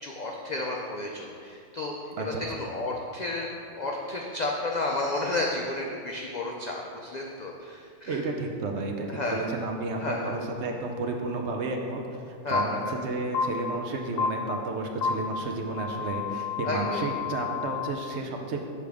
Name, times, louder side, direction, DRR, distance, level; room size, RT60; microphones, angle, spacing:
voice 1, 0.0-8.2 9.1-9.4 9.9-10.3 12.4-13.0 16.6-17.1, left 2 dB, 65° left, 0 dB, 0.4 m, -32 dB
voice 2, 8.0-18.6, right 3 dB, 65° right, 3 dB, 0.9 m, -32 dB
sound 1, 12.5-12.6 13.3-13.4 14.2-14.3 15.0-15.1 15.8-17.9, left 7 dB, 80° left, 1.0 m, -30 dB
6.9 x 5.0 x 3.4 m, 2.3 s
omnidirectional pair, 1.3 m